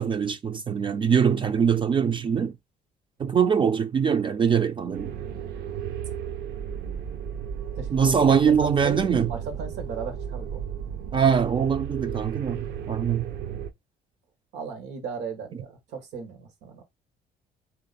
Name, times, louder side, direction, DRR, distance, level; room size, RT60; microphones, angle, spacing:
voice 1, 0.0-2.5 3.2-5.1 7.9-9.3 11.1-13.3, right 7 dB, 30° right, 0.4 m, -23 dB
sound 1, 4.9-13.7, right 8 dB, 70° right, 0.7 m, -34 dB
voice 2, 7.7-10.7 14.5-16.8, right 6 dB, 85° right, 1.5 m, -36 dB
3.4 x 3.1 x 4.0 m
cardioid pair, 110°, 17 cm